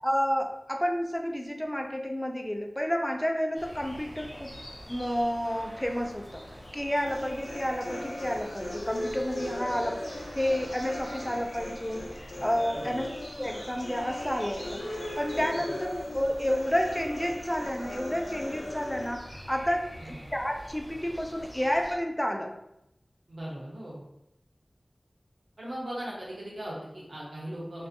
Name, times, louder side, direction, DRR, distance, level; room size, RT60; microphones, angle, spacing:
voice 1, 0.0-4.5 4.9-6.4 6.7-22.6, equal, 10° left, 1 dB, 0.4 m, -30 dB
sound 1, 3.5-22.0, equal, 45° left, 0.9 m, -45 dB
sound 2, 7.1-19.1, left 1 dB, 85° left, 0.4 m, -38 dB
voice 2, 12.7-13.1 15.5-15.6 19.9-20.2 23.3-24.0 25.6-27.9, right 1 dB, 80° right, -5 dB, 0.9 m, -39 dB
2.5 x 2.2 x 2.6 m, 0.83 s
wide cardioid pair, 65°, 0 cm